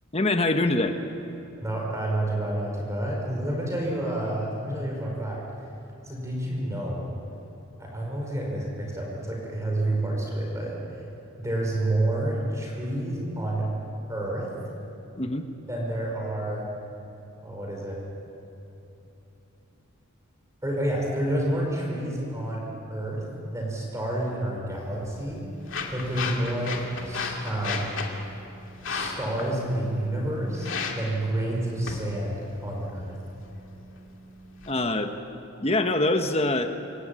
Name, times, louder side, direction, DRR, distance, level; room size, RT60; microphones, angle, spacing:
voice 1, 0.1-1.0 15.2-15.5 34.7-35.1 35.6-36.7, left 2 dB, 30° left, 6 dB, 1.3 m, -24 dB
voice 2, 1.6-5.4 6.0-7.1 7.8-11.0 11.4-13.7 14.1-14.5 15.7-16.7 17.4-18.0 20.6-23.2 23.5-25.4 25.9-27.9 28.8-33.2, right 1 dB, 15° right, -2 dB, 5.4 m, -29 dB
sound 1, 24.7-34.7, left 4 dB, 60° left, 2.6 m, -36 dB
27.5 x 15.0 x 9.1 m, 3.0 s
head